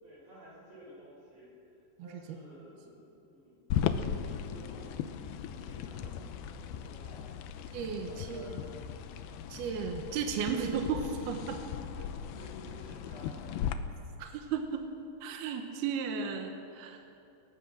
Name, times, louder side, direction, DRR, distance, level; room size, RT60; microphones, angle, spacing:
voice 1, 0.0-3.9 4.3-4.9 5.4-7.5 8.0-8.7 9.9-10.0 11.9-13.7, equal, 40° right, -4 dB, 6.7 m, -53 dB
sound 1, 3.7-13.7, left 9 dB, 75° left, 2.4 m, -37 dB
voice 2, 7.7-8.5 9.5-11.6 14.2-14.9 15.2-17.0, right 6 dB, 70° right, 4 dB, 2.9 m, -34 dB
23.0 x 19.0 x 6.3 m, 2.6 s
omnidirectional pair, 5.0 m